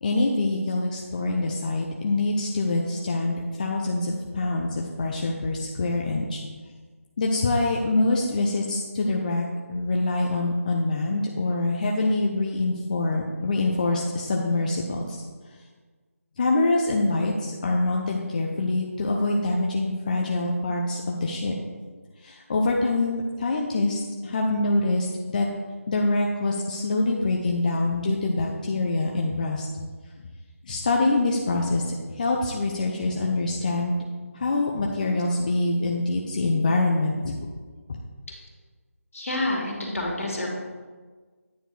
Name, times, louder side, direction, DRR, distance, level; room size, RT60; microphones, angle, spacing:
voice 1, 0.0-6.4 7.2-15.2 16.4-21.5 22.2-25.5 25.9-29.7 30.6-34.0 34.3-37.3, left 2 dB, 35° left, 0 dB, 0.6 m, -25 dB
voice 2, 39.1-40.5, left 1 dB, 65° left, -2 dB, 2.4 m, -28 dB
9.2 x 4.5 x 4.7 m, 1.5 s
figure-of-eight pair, 160°, 8 cm